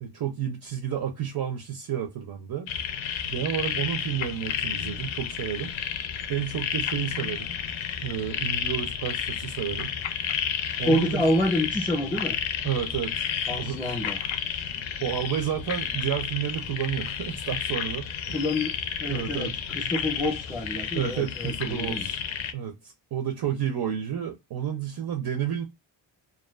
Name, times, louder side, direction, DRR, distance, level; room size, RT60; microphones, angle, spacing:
voice 1, 0.0-2.7 3.2-5.7 6.3-7.5 8.0-9.9 10.8-11.3 12.6-14.0 15.0-18.1 19.1-19.5 20.9-22.2 22.5-25.6, right 9 dB, 55° right, 0.5 m, -31 dB
sound 1, 2.7-22.5, left 8 dB, 75° left, 0.5 m, -32 dB
voice 2, 10.9-12.4 13.5-14.2 18.3-18.7 19.0-22.0, left 1 dB, 5° left, 0.6 m, -27 dB
2.3 x 2.3 x 2.2 m
wide cardioid pair, 170°, 47 cm